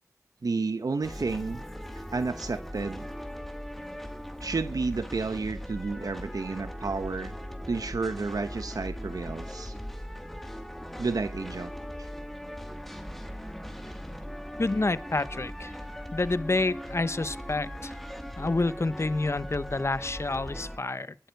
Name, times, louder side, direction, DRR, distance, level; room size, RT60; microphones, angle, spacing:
voice 1, 0.4-1.6 2.1-3.1 4.4-7.3 7.7-9.7 11.0-11.7, right 4 dB, 80° right, 1.1 m, -31 dB
sound 1, 1.0-20.8, equal, 5° left, 2.6 m, -39 dB
voice 2, 14.6-15.7 16.1-17.9 18.4-21.1, left 2 dB, 45° left, 0.9 m, -28 dB
21.0 x 11.5 x 4.7 m
wide cardioid pair, 45°, 6 cm